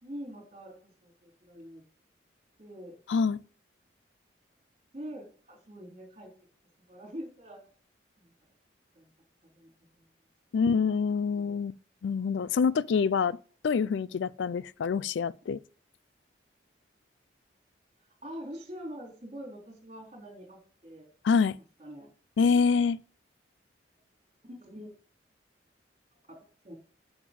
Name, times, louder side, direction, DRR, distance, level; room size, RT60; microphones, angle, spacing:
voice 1, 0.0-1.8 2.6-3.0 4.9-6.3 6.9-7.6 8.2-8.5 8.9-9.1 9.4-10.0 10.8-10.9 11.4-11.6 18.2-21.1 21.8-22.1 22.4-22.8 24.4-24.9 26.3-26.7, equal, 35° right, 3.7 m, -45 dB
voice 2, 10.5-11.7 12.0-13.4 13.6-15.6 21.2-21.6 22.4-23.0, left 5 dB, 75° left, 0.4 m, -26 dB
8.5 x 7.2 x 5.3 m
head